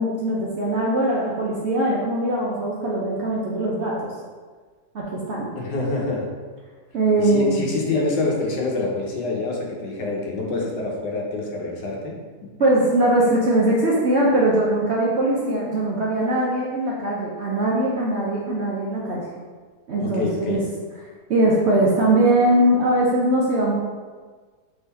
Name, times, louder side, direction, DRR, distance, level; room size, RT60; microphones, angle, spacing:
voice 1, 0.0-4.1 4.9-5.5 6.9-7.6 12.6-19.2 19.9-20.6 21.3-23.7, right 1 dB, 60° right, -5 dB, 0.7 m, -21 dB
voice 2, 5.5-6.3 7.2-12.2 20.0-20.6, left 3 dB, 80° left, 0 dB, 1.4 m, -26 dB
3.7 x 3.5 x 4.2 m, 1.5 s
omnidirectional pair, 1.8 m